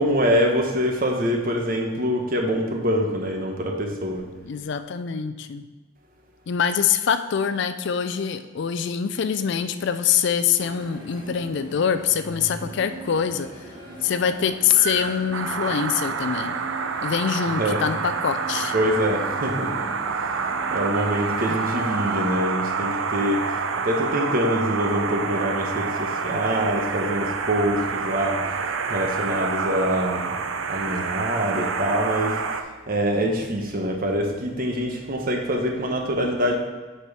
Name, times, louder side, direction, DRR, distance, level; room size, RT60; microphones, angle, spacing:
voice 1, 0.0-4.3 17.6-17.8 18.7-19.9 20.7-28.6 28.9-30.4 30.7-32.4 32.9-36.6, equal, 45° right, 2 dB, 1.0 m, -25 dB
voice 2, 4.4-5.7 6.5-13.5 14.0-16.6 17.0-18.7 21.5-21.6, left 7 dB, 55° left, 10 dB, 0.4 m, -24 dB
sound 1, 10.6-22.4, right 1 dB, 20° right, 1.4 m, -39 dB
sound 2, 15.3-32.6, right 5 dB, 65° right, 0.5 m, -28 dB
8.1 x 4.4 x 4.7 m, 1.3 s
head